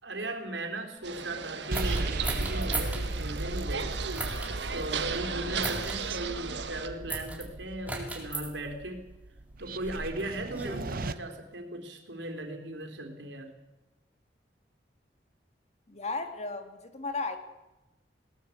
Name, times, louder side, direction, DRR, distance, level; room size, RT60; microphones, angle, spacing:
voice 1, 0.0-4.0 4.7-9.0 9.6-13.5, right 1 dB, 90° right, 4 dB, 3.6 m, -37 dB
sound 1, 1.0-6.9, right 5 dB, 70° right, 1.7 m, -36 dB
sound 2, 1.7-3.0 4.1-4.5 5.6-6.0 7.1-7.4 7.9-8.5 9.4-10.8, right 2 dB, 10° right, 3.8 m, -36 dB
sound 3, 1.7-11.1, right 2 dB, 55° right, 0.9 m, -36 dB
voice 2, 15.9-17.4, left 3 dB, 40° left, 7 dB, 2.3 m, -35 dB
20.5 x 18.5 x 8.4 m, 1.0 s
head